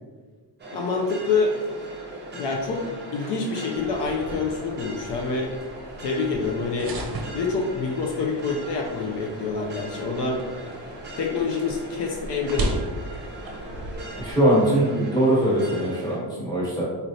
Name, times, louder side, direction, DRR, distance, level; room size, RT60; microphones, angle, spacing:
sound 1, 0.6-16.2, right 1 dB, 25° right, 0.8 m, -39 dB
voice 1, 0.7-1.6 2.3-2.8 3.1-5.5 6.0-7.0 7.3-10.4 11.2-12.8 15.1-15.2, left 4 dB, 70° left, 0 dB, 0.6 m, -26 dB
sound 2, 3.7-14.3, right 1 dB, 55° right, 0.6 m, -36 dB
voice 2, 14.2-16.8, right 1 dB, 10° left, -7 dB, 1.2 m, -21 dB
4.0 x 3.1 x 2.7 m, 1.4 s
wide cardioid pair, 150°, 44 cm